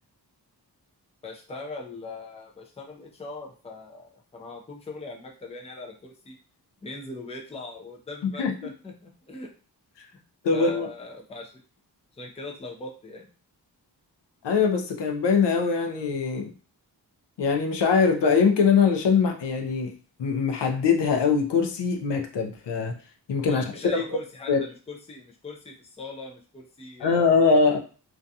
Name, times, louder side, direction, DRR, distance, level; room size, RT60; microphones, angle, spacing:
voice 1, 1.2-6.4 6.8-9.5 10.5-11.5 12.1-13.3 23.5-27.5, left 3 dB, 15° left, 0 dB, 0.4 m, -40 dB
voice 2, 10.4-10.9 14.4-16.5 17.4-23.0 23.3-23.6 23.9-24.2 24.5-24.6 27.0-27.8, left 5 dB, 80° left, 4 dB, 0.6 m, -22 dB
2.4 x 2.2 x 2.6 m, 0.38 s
wide cardioid pair, 135°, 41 cm